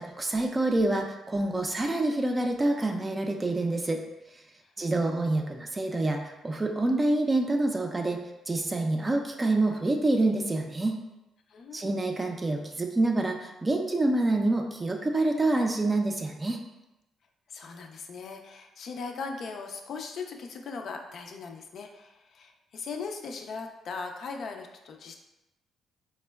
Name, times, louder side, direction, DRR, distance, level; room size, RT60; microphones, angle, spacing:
voice 1, 0.0-4.0 4.8-8.2 8.5-11.0 11.7-16.6, right 2 dB, 20° right, 3 dB, 0.4 m, -27 dB
voice 2, 4.8-5.2 11.5-12.1 17.5-25.1, left 4 dB, 60° left, 3 dB, 0.3 m, -39 dB
4.1 x 2.1 x 2.2 m, 0.95 s
cardioid pair, 90°, 0 cm